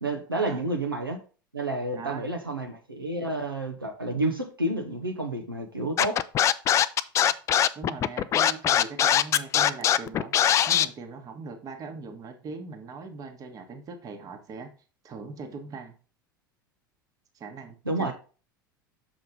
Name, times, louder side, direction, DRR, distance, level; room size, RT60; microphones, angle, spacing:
voice 1, 0.0-1.2 1.5-6.2 17.9-18.1, right 2 dB, 85° right, 2 dB, 0.9 m, -30 dB
voice 2, 1.9-2.5 7.7-10.4 10.7-14.7 15.0-15.9 17.3-18.1, right 4 dB, 30° right, 5 dB, 1.3 m, -40 dB
Scratching (performance technique), 6.0-10.9, left 10 dB, 25° left, 0.3 m, -21 dB
6.8 x 5.1 x 3.7 m, 0.36 s
figure-of-eight pair, 80°, 11 cm